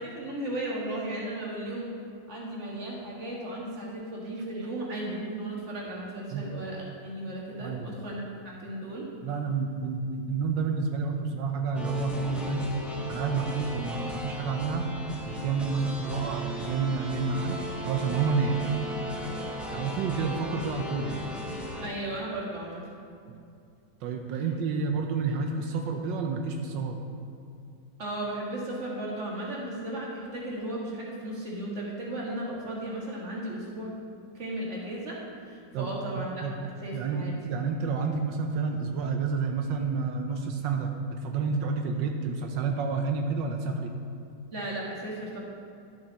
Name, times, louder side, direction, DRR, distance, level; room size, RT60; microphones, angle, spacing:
voice 1, 0.0-1.9 2.3-9.1 21.8-22.9 24.4-24.5 28.0-33.9 34.3-35.2 35.4-36.4 36.8-37.4 44.5-45.4, right 1 dB, 40° right, -4 dB, 2.1 m, -35 dB
voice 2, 7.6-8.0 9.2-12.7 13.1-14.9 15.3-17.6 17.9-18.6 19.7-21.2 24.0-27.0 35.7-35.9 36.2-36.5 36.9-43.9, right 5 dB, 85° right, 3 dB, 1.4 m, -29 dB
sound 1, 11.7-21.9, equal, ahead, 0.7 m, -37 dB
12.0 x 6.9 x 4.2 m, 2.5 s
omnidirectional pair, 2.0 m